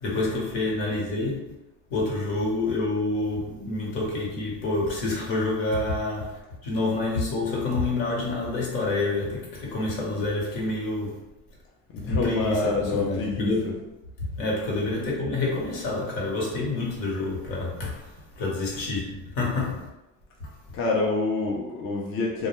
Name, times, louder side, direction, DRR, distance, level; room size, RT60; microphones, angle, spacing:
voice 1, 0.0-1.5 1.9-11.2 12.0-13.8 14.4-19.9 20.4-20.5, left 2 dB, 70° left, 1.1 m, -28 dB
voice 2, 11.9-13.5 20.7-22.5, left 3 dB, 35° left, 0.5 m, -26 dB
2.2 x 2.2 x 2.9 m
supercardioid pair, 120°, 40 cm